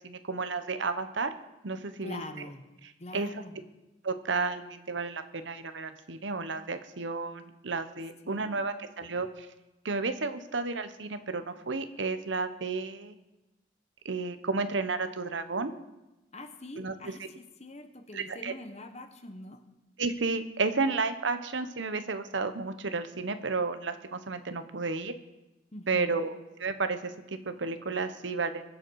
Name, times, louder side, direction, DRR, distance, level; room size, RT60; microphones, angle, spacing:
voice 1, 0.0-1.3 1.6-2.2 3.1-3.3 4.0-9.5 9.8-13.2 14.0-15.7 16.8-17.1 18.1-18.5 20.0-25.1 25.9-26.3 26.6-28.6, right 4 dB, 75° right, 10 dB, 1.0 m, -32 dB
voice 2, 2.0-2.6 3.0-3.6 8.2-8.7 16.3-19.6 25.7-26.2, left 2 dB, 35° left, 8 dB, 1.1 m, -44 dB
22.0 x 7.7 x 4.7 m, 1.0 s
head